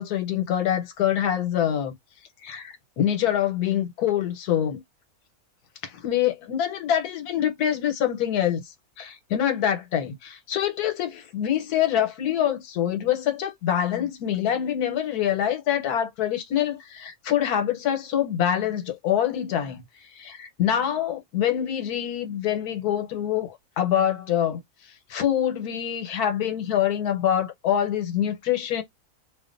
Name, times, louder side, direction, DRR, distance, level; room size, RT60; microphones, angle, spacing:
voice 1, 0.0-2.0 2.4-4.8 5.8-19.8 20.2-24.6 25.1-28.8, left 10 dB, 85° left, 1.3 m, -25 dB
2.4 x 2.4 x 2.4 m
omnidirectional pair, 1.6 m